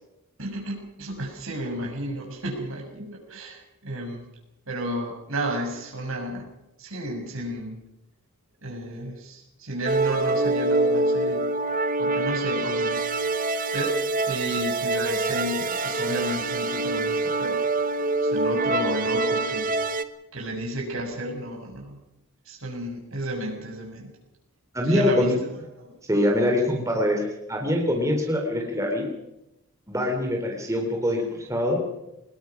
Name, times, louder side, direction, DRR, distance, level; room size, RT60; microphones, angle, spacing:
voice 1, 0.4-4.2 4.7-6.5 6.8-7.8 8.6-11.5 12.0-13.1 13.7-17.6 18.2-19.7 20.3-22.0 22.4-24.1 24.8-25.5 25.8-26.0, right 1 dB, 70° right, 1 dB, 6.6 m, -32 dB
sound 1, 9.9-20.0, right 2 dB, 40° right, 1.1 m, -25 dB
voice 2, 24.7-25.3 26.1-29.1 29.9-31.8, left 1 dB, 15° right, 1 dB, 3.6 m, -24 dB
24.0 x 20.5 x 6.0 m, 0.90 s
head